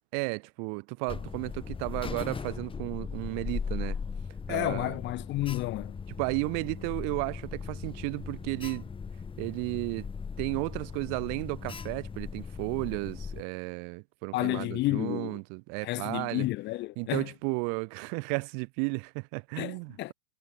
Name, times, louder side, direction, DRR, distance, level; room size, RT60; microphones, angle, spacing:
voice 1, 0.1-4.0 4.5-5.0 6.2-8.8 9.4-10.1 10.4-16.5 17.0-20.1, right 40 dB or more, 45° right, 2.4 m, -33 dB
Alarm, 1.1-13.4, left 5 dB, 15° left, 7.9 m, -38 dB
voice 2, 4.5-6.0 14.3-15.4 15.8-17.3 19.6-20.1, left 18 dB, 30° left, 1.1 m, -31 dB
hypercardioid pair, 120°, 34 cm